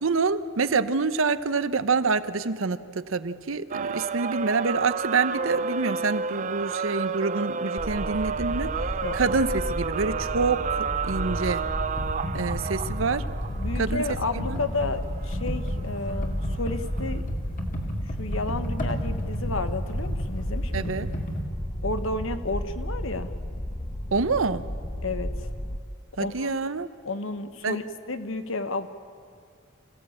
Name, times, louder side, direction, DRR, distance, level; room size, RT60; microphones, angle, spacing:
voice 1, 0.0-8.7 9.1-11.7 12.3-13.3 13.8-14.1 14.3-14.6 20.7-21.1 24.1-24.7 26.2-26.9 27.6-27.8, right 4 dB, 70° right, 13 dB, 0.8 m, -26 dB
sound 1, 3.7-17.2, right 5 dB, 35° right, 0.5 m, -32 dB
sound 2, 7.8-25.8, left 1 dB, 20° left, 0.9 m, -33 dB
Computer keyboard, 11.9-21.4, equal, 40° left, 2.5 m, -34 dB
voice 2, 13.5-17.2 18.2-21.0 21.8-23.3 25.0-25.5 26.2-26.5 27.0-28.9, left 2 dB, 70° left, 10 dB, 1.2 m, -32 dB
26.5 x 16.0 x 8.7 m, 2.3 s
head